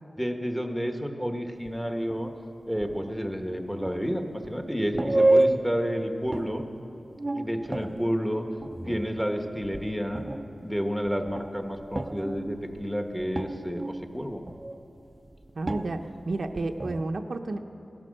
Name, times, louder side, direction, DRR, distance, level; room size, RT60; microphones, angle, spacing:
voice 1, 0.2-2.3 2.7-6.6 7.4-8.5 8.8-10.2 10.6-14.4, equal, ahead, 5 dB, 1.2 m, -30 dB
sound 1, 1.6-1.7 2.1-2.2 2.6-3.4 3.9-4.5 4.9-5.9 6.2-6.8 7.0-9.9 10.1-17.0, right 2 dB, 25° right, 0.6 m, -30 dB
voice 2, 15.6-17.6, right 2 dB, 65° right, 5 dB, 0.7 m, -31 dB
17.0 x 12.0 x 6.5 m, 2.8 s
wide cardioid pair, 90°, 0 cm